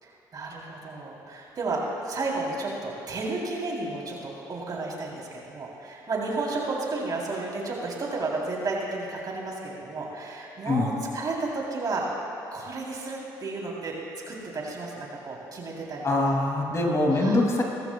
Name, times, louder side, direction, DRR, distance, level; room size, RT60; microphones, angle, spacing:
voice 1, 0.0-12.1 12.5-13.9 14.3-16.4 17.1-17.4, right 3 dB, 50° right, -3 dB, 3.4 m, -32 dB
voice 2, 16.0-17.6, left 2 dB, 35° left, 0 dB, 2.6 m, -23 dB
19.0 x 14.5 x 2.3 m, 2.8 s
supercardioid pair, 65°, 9 cm